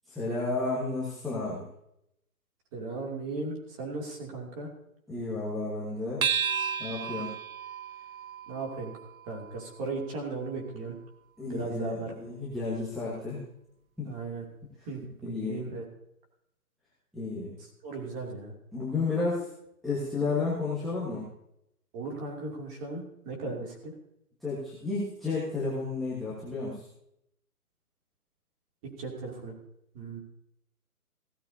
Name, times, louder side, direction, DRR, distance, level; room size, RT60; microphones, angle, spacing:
voice 1, 0.1-1.6 5.1-6.2 6.8-7.3 11.4-13.4 14.0-14.1 15.2-15.6 17.1-17.5 18.7-19.5 19.8-21.3 23.4-23.5 24.4-26.8, left 3 dB, ahead, -10 dB, 1.3 m, -32 dB
voice 2, 2.7-4.7 8.5-8.9 9.3-11.0 11.5-12.1 14.0-14.4 14.9-15.8 17.8-18.5 21.9-23.9 29.0-29.5 29.9-30.2, right 3 dB, 20° right, 0 dB, 2.6 m, -36 dB
sound 1, 6.2-11.0, right 7 dB, 65° right, 0.8 m, -34 dB
16.0 x 13.5 x 2.7 m, 0.76 s
hypercardioid pair, 150°, 45 cm